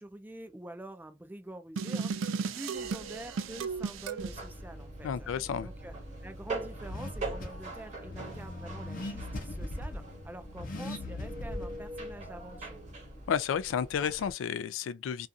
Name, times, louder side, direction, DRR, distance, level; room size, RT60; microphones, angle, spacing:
voice 1, 0.0-5.3 5.6-5.9 6.2-12.8, right 1 dB, 10° right, 0.3 m, -46 dB
sound 1, 1.8-4.4, right 5 dB, 80° right, 0.4 m, -34 dB
sound 2, 2.7-14.3, right 2 dB, 40° right, 0.8 m, -44 dB
Car / Accelerating revving vroom, 4.2-13.4, left 1 dB, 45° left, 0.7 m, -42 dB
voice 2, 5.0-5.7 13.3-15.3, left 7 dB, 75° left, 0.3 m, -31 dB
2.5 x 2.3 x 2.6 m
head